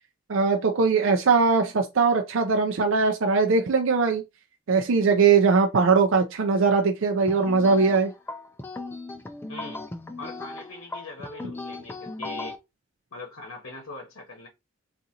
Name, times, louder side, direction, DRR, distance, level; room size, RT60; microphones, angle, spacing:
voice 1, 0.3-4.2 4.7-8.1, right 4 dB, 65° right, 0.5 m, -21 dB
sound 1, 7.3-12.6, left 2 dB, 10° left, 0.3 m, -37 dB
voice 2, 9.5-9.8 10.2-12.6 13.1-14.5, left 3 dB, 70° left, 0.9 m, -41 dB
3.7 x 2.5 x 2.8 m
head